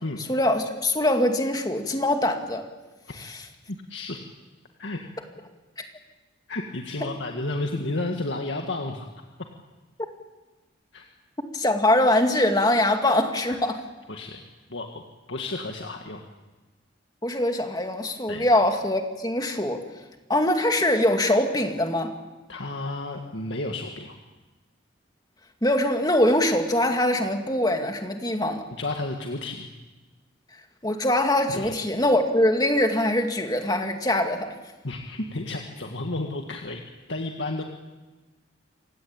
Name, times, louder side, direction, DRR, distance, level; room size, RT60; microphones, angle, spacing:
voice 1, 0.3-2.6 3.2-3.4 5.8-5.9 7.0-7.1 11.5-13.8 17.2-19.8 20.3-22.1 25.6-28.6 30.8-34.5, left 1 dB, 20° left, 5 dB, 2.2 m, -23 dB
voice 2, 3.7-4.2 4.8-5.1 6.5-9.1 10.9-11.1 13.5-13.6 14.1-14.4 14.7-15.0 15.3-16.2 18.3-18.5 22.5-24.2 28.7-29.7 31.5-31.8 34.8-36.8 37.1-37.6, left 2 dB, 75° left, 2 dB, 1.9 m, -32 dB
27.5 x 16.5 x 8.9 m, 1.2 s
head